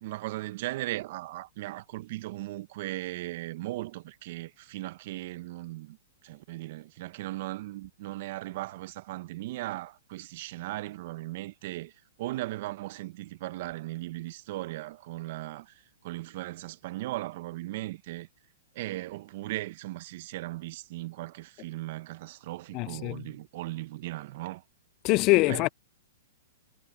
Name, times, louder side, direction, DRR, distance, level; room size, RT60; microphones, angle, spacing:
voice 1, 0.0-6.0 6.2-11.9 12.2-18.3 18.7-24.6 25.5-25.7, right 17 dB, 55° right, 1.4 m, -37 dB
voice 2, 22.7-23.2 25.0-25.7, left 23 dB, 40° left, 0.4 m, -23 dB
hypercardioid pair, 115°, 0 cm